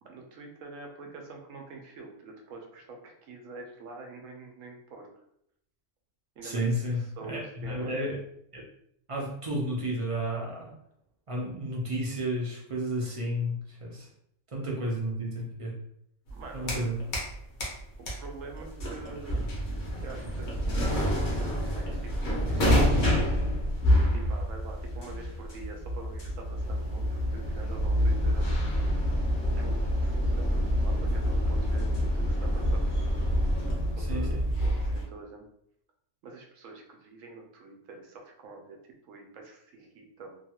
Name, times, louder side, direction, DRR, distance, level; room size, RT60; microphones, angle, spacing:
voice 1, 0.0-5.2 6.4-6.8 7.2-7.9 16.3-16.8 18.0-19.4 20.0-23.4 24.1-28.6 29.5-33.1 33.9-35.4 36.2-38.8 39.0-40.4, right 3 dB, 85° right, 2 dB, 1.0 m, -46 dB
voice 2, 6.4-8.2 8.5-8.6 9.1-10.7 11.3-14.1 14.5-15.7 16.5-16.9 34.0-34.4, equal, 45° right, -3 dB, 0.4 m, -32 dB
sound 1, 16.3-17.3 17.6-35.0, equal, 45° left, 0.8 m, -27 dB
2.8 x 2.3 x 2.8 m, 0.72 s
omnidirectional pair, 1.3 m